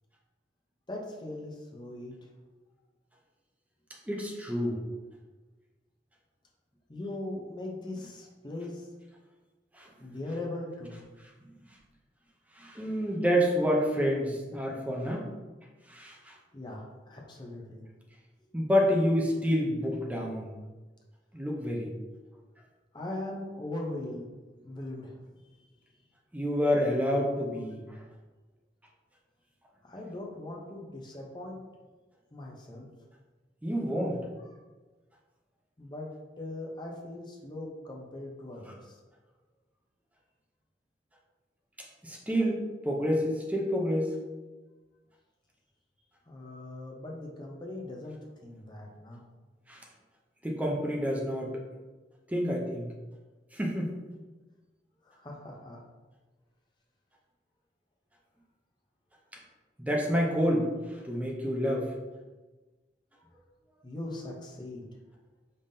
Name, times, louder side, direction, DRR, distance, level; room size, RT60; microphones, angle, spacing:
voice 1, 0.9-2.3 6.9-8.9 10.0-11.0 16.5-17.9 22.9-24.3 24.6-25.3 25.6-25.7 29.8-31.6 32.3-32.9 35.8-36.1 36.4-39.0 46.3-49.2 55.0-55.8 63.8-64.9, left 1 dB, 25° left, -1 dB, 0.7 m, -40 dB
voice 2, 4.1-4.8 9.8-9.9 12.6-15.3 15.9-16.3 18.5-20.5 21.3-21.9 26.3-27.8 33.6-34.2 42.0-44.1 49.7-49.8 50.4-51.5 52.3-52.8 53.5-53.9 59.8-60.7 61.0-61.9, equal, 10° right, -1 dB, 0.6 m, -28 dB
5.3 x 3.5 x 2.7 m, 1.2 s
head